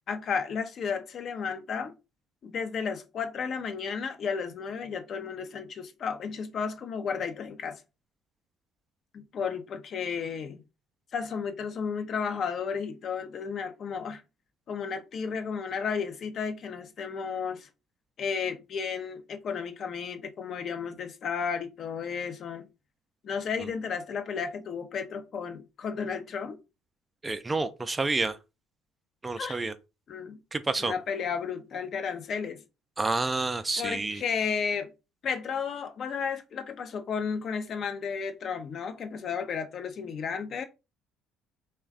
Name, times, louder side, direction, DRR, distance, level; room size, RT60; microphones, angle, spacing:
voice 1, 0.0-1.9 2.4-7.8 9.1-10.6 11.1-14.2 14.7-17.7 18.2-22.7 23.2-26.6 29.4-29.6 30.1-30.4 30.8-32.6 33.8-34.9 35.2-40.6, left 6 dB, 50° left, 0.5 m, -33 dB
voice 2, 27.2-28.4 29.2-29.7 30.5-30.9 33.0-34.2, right 3 dB, 20° right, 0.4 m, -29 dB
3.1 x 2.2 x 3.6 m
hypercardioid pair, 55°, 0 cm